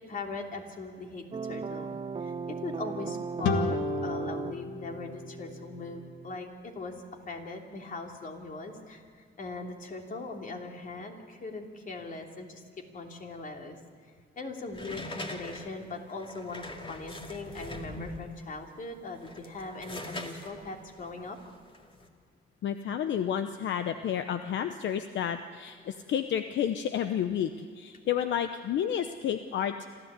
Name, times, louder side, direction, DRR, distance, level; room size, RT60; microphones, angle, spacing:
voice 1, 0.1-1.9 2.2-6.9 7.3-12.6 12.9-13.8 14.4-21.4, left 3 dB, 45° left, 2 dB, 3.0 m, -40 dB
sound 1, 1.3-6.4, right 5 dB, 30° right, 0.6 m, -38 dB
sound 2, 3.4-6.8, left 4 dB, 90° left, 1.7 m, -34 dB
sound 3, 14.7-18.4 19.1-22.1, left 1 dB, 25° left, 2.4 m, -42 dB
voice 2, 22.6-29.9, left 9 dB, 75° left, 8 dB, 0.9 m, -31 dB
26.5 x 14.0 x 8.3 m, 2.1 s
cardioid pair, 100°, 19 cm